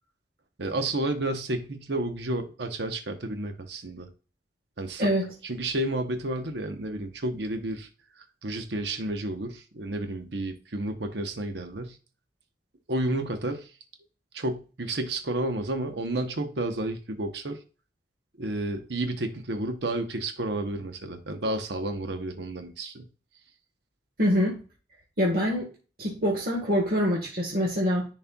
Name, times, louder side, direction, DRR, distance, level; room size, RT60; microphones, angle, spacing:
voice 1, 0.6-4.1 4.8-5.1 5.4-7.9 8.2-12.0 12.9-13.7 14.3-17.6 18.4-23.0, right 1 dB, 70° right, 1.0 m, -31 dB
voice 2, 24.2-24.6 25.2-25.7 26.0-28.0, equal, 55° right, 1.5 m, -25 dB
10.5 x 4.2 x 2.3 m
head